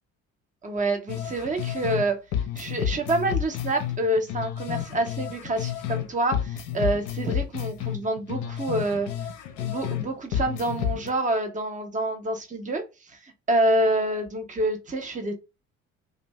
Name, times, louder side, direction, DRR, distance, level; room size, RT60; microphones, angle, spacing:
voice 1, 0.6-2.2 2.6-9.1 9.6-12.8 13.1-15.3, right 1 dB, 20° right, 0.7 m, -27 dB
sound 1, 1.1-2.1 2.3-6.1 6.3-10.1 10.3-11.1, left 9 dB, 45° left, 0.6 m, -30 dB
2.6 x 2.2 x 3.0 m
figure-of-eight pair, 55°, 41 cm